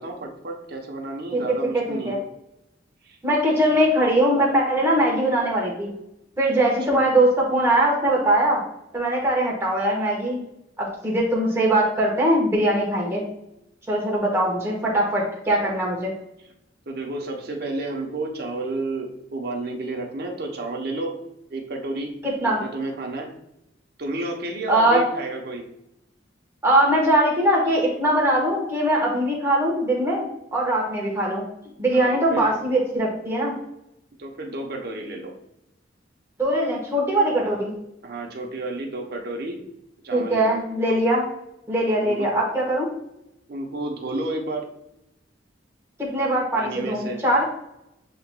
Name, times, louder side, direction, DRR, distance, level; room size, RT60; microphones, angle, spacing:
voice 1, 0.0-2.2 3.1-3.2 6.9-7.1 16.9-21.1 21.5-22.1 22.6-23.3 24.0-25.6 31.9-32.5 34.2-35.3 37.4-37.6 38.0-39.6 40.0-40.6 42.0-42.3 43.5-44.7 46.5-47.2, right 2 dB, 55° right, 0 dB, 0.8 m, -31 dB
voice 2, 1.7-2.2 3.2-5.9 6.4-8.6 8.9-10.4 10.8-13.2 13.9-16.1 22.2-22.6 24.7-25.0 26.6-31.4 31.8-33.5 36.4-37.7 40.1-41.2 41.7-42.9 46.0-47.4, right 1 dB, 15° right, -4 dB, 1.2 m, -21 dB
7.6 x 2.9 x 2.2 m, 0.84 s
head